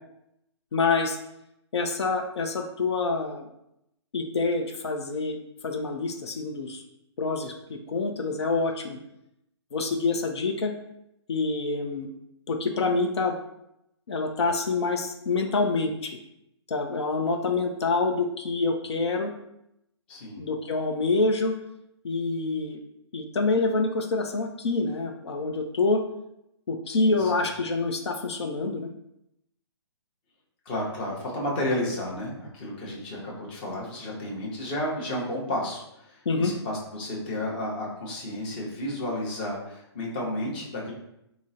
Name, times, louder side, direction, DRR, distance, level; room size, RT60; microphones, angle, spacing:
voice 1, 0.7-1.2 1.7-3.5 4.1-6.8 7.2-9.0 9.7-10.7 11.3-12.1 12.5-13.4 14.1-16.2 16.7-19.3 20.4-21.5 22.0-22.8 23.1-26.0 26.7-28.9 36.3-36.5, left 3 dB, 70° left, 3 dB, 0.5 m, -26 dB
voice 2, 20.1-20.5 26.9-27.5 30.7-40.9, left 1 dB, 20° left, -3 dB, 0.7 m, -32 dB
3.6 x 2.0 x 4.0 m, 0.81 s
hypercardioid pair, 170°, 15 cm